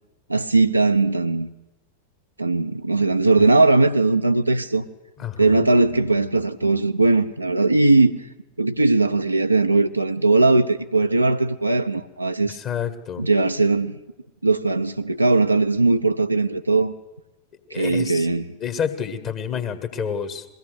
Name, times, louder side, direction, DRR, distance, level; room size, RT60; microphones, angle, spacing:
voice 1, 0.3-1.5 2.4-4.8 5.4-8.2 8.6-12.6 13.2-14.0 14.4-16.9 17.7-18.5, right 3 dB, 85° right, 0.6 m, -19 dB
voice 2, 5.2-5.6 12.4-13.2 17.7-18.3 18.6-20.5, left 7 dB, 35° left, 1.5 m, -29 dB
21.5 x 16.5 x 8.1 m
figure-of-eight pair, 90°, 0 cm